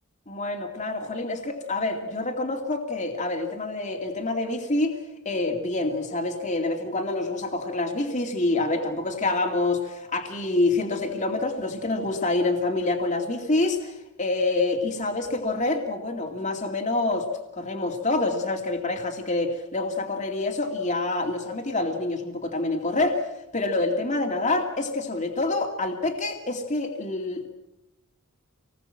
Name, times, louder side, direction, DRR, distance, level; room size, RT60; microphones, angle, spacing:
voice 1, 0.3-5.0 5.2-17.3 17.5-23.3 23.5-27.5, left 2 dB, 35° left, 2 dB, 2.4 m, -27 dB
26.5 x 20.0 x 7.6 m, 0.93 s
head